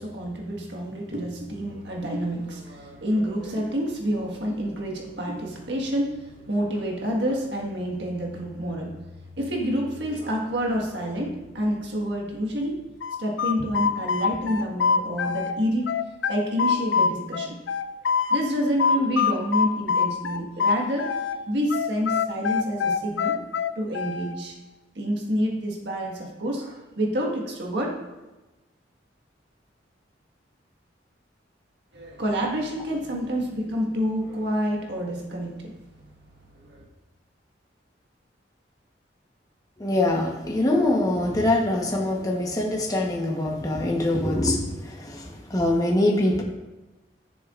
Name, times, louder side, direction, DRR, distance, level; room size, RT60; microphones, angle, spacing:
voice 1, 0.0-9.0 9.4-12.8 13.2-15.9 16.3-17.6 18.3-21.1 21.5-23.3 23.7-24.6 24.9-28.0 31.9-35.7 36.6-36.8, equal, 70° right, -1 dB, 1.6 m, -28 dB
sound 1, 13.0-15.5 15.9-18.4 18.8-21.4 21.7-24.3, left 6 dB, 85° left, 0.5 m, -24 dB
voice 2, 39.8-46.4, left 1 dB, 20° left, -1 dB, 1.1 m, -24 dB
14.5 x 6.8 x 2.5 m, 1.1 s
head